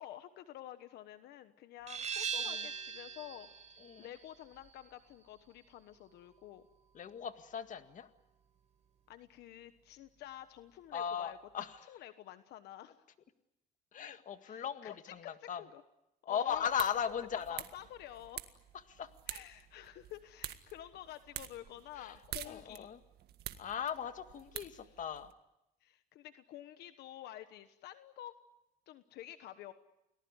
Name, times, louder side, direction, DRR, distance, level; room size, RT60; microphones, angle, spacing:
voice 1, 0.0-3.5 4.0-6.6 9.1-11.4 11.9-12.9 14.4-15.0 15.2-15.8 16.3-16.7 17.3-18.6 19.3-22.9 25.8-28.3 28.9-29.7, left 13 dB, 80° left, 10 dB, 1.3 m, -50 dB
sound 1, 1.9-7.3, right 7 dB, 40° right, 4.7 m, -42 dB
voice 2, 2.3-2.7 3.8-4.1 6.9-8.1 10.9-11.9 13.9-15.6 16.3-17.6 18.9-19.1 22.0-22.1 22.5-23.0 23.6-25.3, left 8 dB, 50° left, 9 dB, 1.9 m, -38 dB
sound 2, 16.5-25.3, right 12 dB, 70° right, 1.8 m, -48 dB
29.5 x 19.5 x 9.7 m, 0.90 s
cardioid pair, 110°, 17 cm